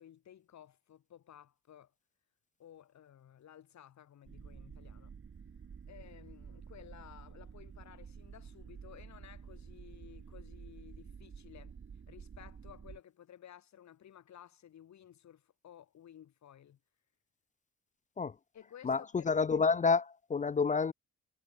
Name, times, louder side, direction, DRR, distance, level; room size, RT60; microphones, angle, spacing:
voice 1, 0.0-1.9 2.6-5.2 5.9-11.8 12.1-16.8 18.5-19.6, left 10 dB, 65° left, 5.8 m, -56 dB
sound 1, 4.2-13.0, right 6 dB, 45° right, 6.3 m, -50 dB
voice 2, 18.8-20.9, left 5 dB, 25° left, 0.5 m, -29 dB
cardioid pair, 90°, 30 cm